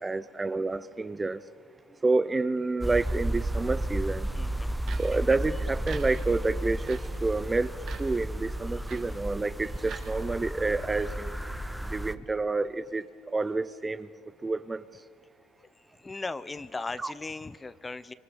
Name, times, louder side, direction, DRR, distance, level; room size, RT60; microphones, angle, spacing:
voice 1, 0.0-1.4 2.0-4.3 5.0-7.7 8.0-11.3 11.9-13.0 13.3-14.1 14.4-14.8 17.0-17.1, right 3 dB, 20° right, 14 dB, 0.8 m, -29 dB
sound 1, 2.8-12.1, right 1 dB, 5° right, 1.1 m, -33 dB
voice 2, 4.3-4.7 16.0-18.1, left 3 dB, 20° left, 15 dB, 1.1 m, -37 dB
sound 2, 4.6-10.6, right 6 dB, 60° right, 2.8 m, -48 dB
28.0 x 25.5 x 7.1 m, 2.2 s
hypercardioid pair, 70°, 0 cm